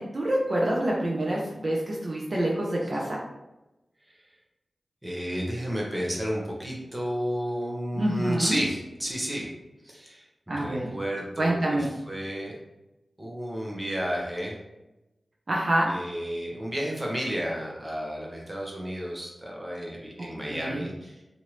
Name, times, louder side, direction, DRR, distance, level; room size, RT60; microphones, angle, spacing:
voice 1, 0.0-3.2 7.9-8.6 10.5-10.9 11.4-11.9 15.5-15.9 20.5-20.8, right 1 dB, 45° right, -3 dB, 0.5 m, -26 dB
voice 2, 5.0-9.5 9.8-11.8 12.1-12.6 13.2-14.6 15.9-21.2, equal, 10° right, -3 dB, 0.8 m, -32 dB
3.1 x 2.6 x 2.9 m, 0.98 s
wide cardioid pair, 100°, 0 cm